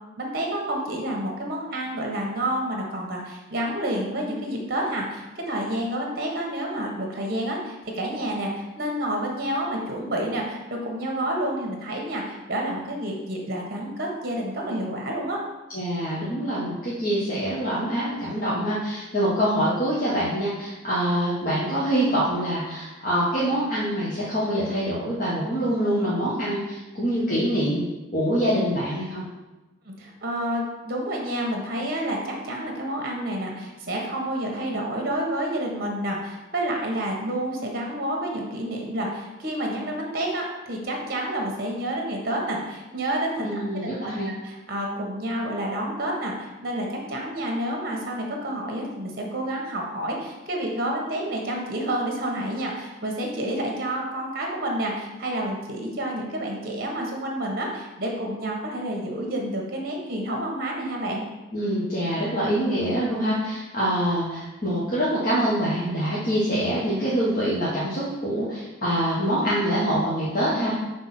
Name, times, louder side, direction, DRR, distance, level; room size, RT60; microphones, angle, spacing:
voice 1, 0.2-15.4 29.8-43.6 44.4-61.2, right 1 dB, 50° right, 0 dB, 1.4 m, -29 dB
voice 2, 15.7-27.8 28.1-29.2 43.4-44.3 61.5-70.8, equal, 45° left, -9 dB, 1.4 m, -25 dB
6.1 x 3.5 x 5.9 m, 1.1 s
head